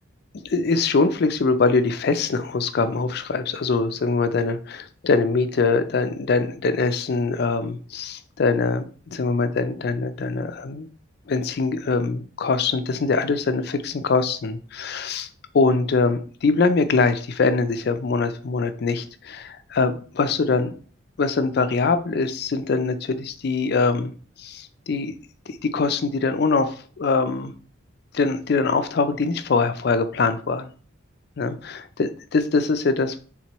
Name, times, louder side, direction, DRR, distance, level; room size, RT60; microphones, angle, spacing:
voice 1, 0.4-10.9 11.3-15.3 15.5-20.7 21.2-25.1 25.5-27.5 28.1-30.7 31.4-33.2, left 4 dB, 55° left, 11 dB, 0.4 m, -23 dB
3.7 x 3.0 x 4.4 m, 0.42 s
head